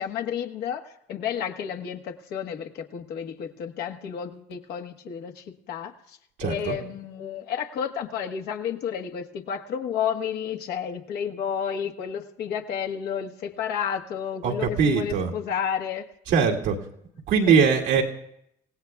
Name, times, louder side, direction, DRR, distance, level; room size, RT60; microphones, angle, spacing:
voice 1, 0.0-16.0, left 8 dB, 80° left, 4 dB, 1.4 m, -31 dB
voice 2, 6.4-6.8 14.4-15.3 16.3-16.8 17.3-18.0, right 6 dB, 85° right, -1 dB, 2.3 m, -21 dB
27.5 x 17.0 x 2.4 m, 0.75 s
cardioid pair, 110°, 17 cm